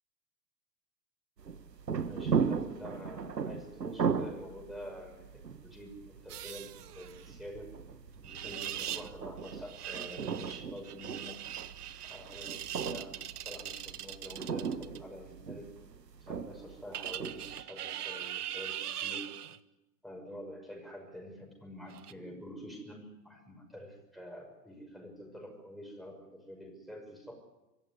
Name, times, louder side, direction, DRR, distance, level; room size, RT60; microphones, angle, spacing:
sound 1, 1.4-17.6, right 6 dB, 85° right, 1.2 m, -37 dB
voice 1, 2.0-7.7 8.2-11.4 11.8-15.8 16.2-19.4 20.0-27.3, equal, ahead, 0 dB, 6.1 m, -47 dB
sound 2, 6.3-7.3 8.2-9.1 9.4-15.0 16.9-19.6 21.9-22.1, right 10 dB, 70° right, 1.1 m, -41 dB
25.5 x 14.5 x 9.8 m, 1.0 s
figure-of-eight pair, 100°, 48 cm